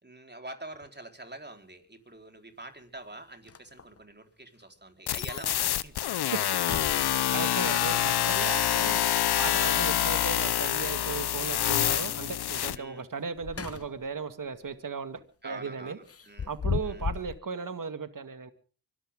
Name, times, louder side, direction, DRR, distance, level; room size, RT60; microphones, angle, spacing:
voice 1, 0.0-6.2 7.5-7.8 8.6-8.8 12.7-13.1 15.4-16.5 16.8-17.1, right 2 dB, 25° right, 5 dB, 4.2 m, -46 dB
sound 1, 0.7-0.9 2.6-2.7 3.1-3.2 3.5-4.0 4.6-4.7 5.2-5.3 5.7-6.1 6.5-7.6 9.7-10.4 13.1-14.2 14.5-14.8 16.1-17.4, left 6 dB, 35° left, 0.9 m, -36 dB
sound 2, 5.1-12.8, left 11 dB, 75° left, 0.8 m, -26 dB
voice 2, 7.1-9.1 9.4-16.0 16.5-18.5, right 5 dB, 50° right, 10 dB, 2.2 m, -36 dB
24.5 x 14.0 x 3.7 m, 0.40 s
supercardioid pair, 45°, 40 cm